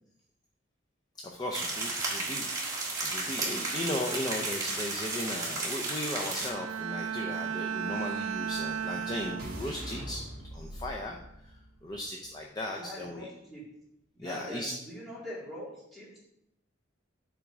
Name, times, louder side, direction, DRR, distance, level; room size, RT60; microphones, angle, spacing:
voice 1, 1.2-10.2 10.5-11.2 11.4-11.5 11.8-13.3 14.2-14.7, left 1 dB, 20° left, 1 dB, 0.5 m, -37 dB
sound 1, 1.5-6.5, right 3 dB, 20° right, 1.5 m, -33 dB
Bowed string instrument, 6.4-10.0 10.4-10.8, right 7 dB, 90° right, 0.4 m, -35 dB
sound 2, 8.4-12.5, equal, 45° right, 2.1 m, -44 dB
voice 2, 12.8-13.6 14.1-16.2, left 1 dB, ahead, -10 dB, 2.7 m, -43 dB
7.1 x 3.6 x 4.8 m, 0.80 s
head